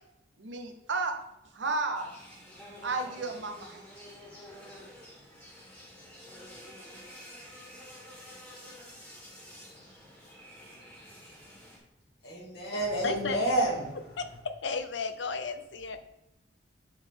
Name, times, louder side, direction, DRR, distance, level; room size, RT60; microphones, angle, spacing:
voice 1, 0.4-1.1 1.5-2.1 2.8-3.8, right 3 dB, 75° right, 5 dB, 0.9 m, -32 dB
sound 1, 1.9-11.8, equal, 10° left, 2.0 m, -49 dB
voice 2, 12.2-14.0, right 1 dB, 60° left, -3 dB, 2.4 m, -29 dB
voice 3, 13.0-13.4 14.2-16.0, left 4 dB, 75° left, 10 dB, 0.6 m, -34 dB
7.7 x 4.3 x 3.6 m, 0.90 s
head